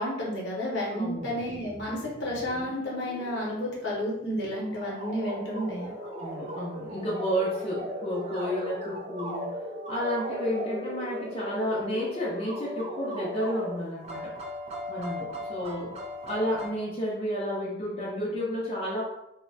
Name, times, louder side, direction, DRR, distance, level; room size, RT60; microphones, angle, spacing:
voice 1, 0.0-5.9, equal, 70° left, -4 dB, 0.8 m, -31 dB
voice 2, 0.9-1.3 5.8-14.4 14.9-15.9 16.2-19.0, equal, 30° left, -6 dB, 0.5 m, -31 dB
sound 1, 1.2-16.7, equal, 35° right, 0.3 m, -38 dB
2.7 x 2.1 x 2.6 m, 0.87 s
head